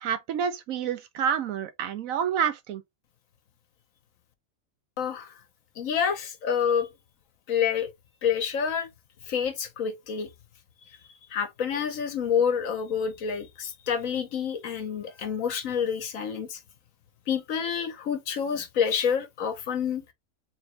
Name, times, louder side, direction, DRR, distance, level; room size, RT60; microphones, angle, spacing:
voice 1, 0.0-2.8, right 8 dB, 75° right, 1.1 m, -28 dB
voice 2, 5.0-5.3 5.8-6.9 7.5-7.9 8.2-8.9 9.3-10.3 11.3-16.6 17.3-20.0, left 7 dB, 70° left, 1.3 m, -28 dB
3.9 x 3.5 x 3.2 m
omnidirectional pair, 1.4 m